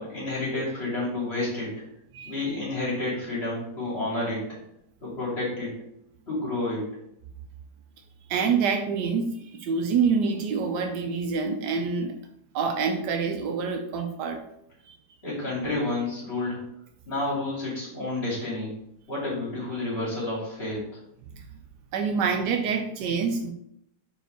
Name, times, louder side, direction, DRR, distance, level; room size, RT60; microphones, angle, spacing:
voice 1, 0.0-1.7 2.2-4.6 5.0-5.7 6.3-6.8 15.2-16.6 17.1-18.7 19.1-20.8, left 2 dB, 35° left, -6 dB, 2.9 m, -30 dB
voice 2, 8.3-12.2 12.5-14.4 14.9-15.0 21.3-21.4 21.9-23.5, right 5 dB, 80° right, 5 dB, 1.2 m, -26 dB
4.6 x 4.5 x 4.5 m, 0.75 s
omnidirectional pair, 1.8 m